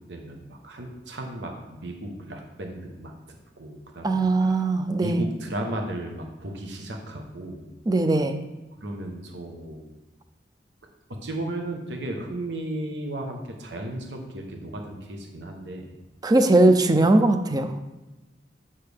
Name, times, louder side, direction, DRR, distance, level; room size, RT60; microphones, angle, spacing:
voice 1, 0.1-3.1 3.6-4.7 5.0-7.7 8.8-9.8 11.2-15.8, right 1 dB, 80° right, 2 dB, 1.1 m, -35 dB
voice 2, 4.0-5.2 7.9-8.4 16.2-17.8, right 2 dB, 20° right, 8 dB, 0.5 m, -20 dB
8.3 x 5.5 x 3.5 m, 1.1 s
head